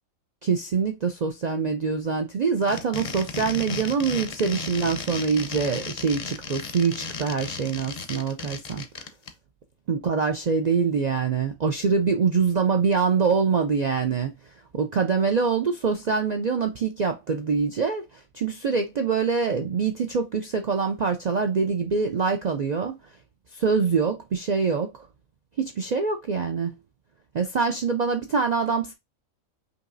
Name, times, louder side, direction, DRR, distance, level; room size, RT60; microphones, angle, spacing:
voice 1, 0.4-9.1 9.9-14.3 14.7-23.0 23.5-24.9 25.6-26.7 27.3-28.9, right 5 dB, 90° right, 0.3 m, -24 dB
sound 1, 2.6-9.3, left 5 dB, 45° left, 0.5 m, -35 dB
5.3 x 2.9 x 2.5 m
omnidirectional pair, 1.4 m